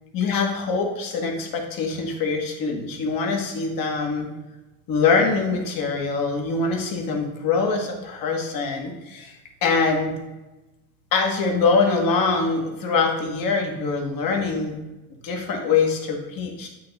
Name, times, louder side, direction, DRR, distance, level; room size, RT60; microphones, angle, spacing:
voice 1, 0.1-4.3 4.9-10.1 11.1-14.8 15.2-16.7, left 4 dB, 65° left, 2 dB, 1.4 m, -23 dB
8.6 x 2.9 x 4.0 m, 1.0 s
supercardioid pair, 70°, 37 cm